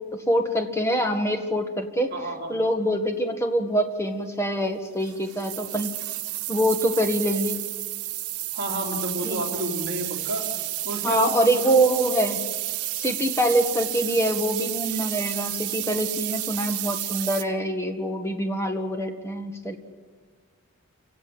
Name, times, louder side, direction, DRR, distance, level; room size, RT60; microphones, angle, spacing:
voice 1, 0.3-2.1 2.5-5.9 6.5-7.6 9.2-9.4 11.0-12.4 12.9-19.8, right 1 dB, 10° left, 5 dB, 1.7 m, -24 dB
voice 2, 2.1-2.6 8.5-10.4 10.8-11.7, right 1 dB, 45° right, 0 dB, 3.5 m, -31 dB
sound 1, 5.0-17.4, right 15 dB, 85° right, 1.2 m, -31 dB
28.5 x 17.0 x 7.9 m, 1.5 s
head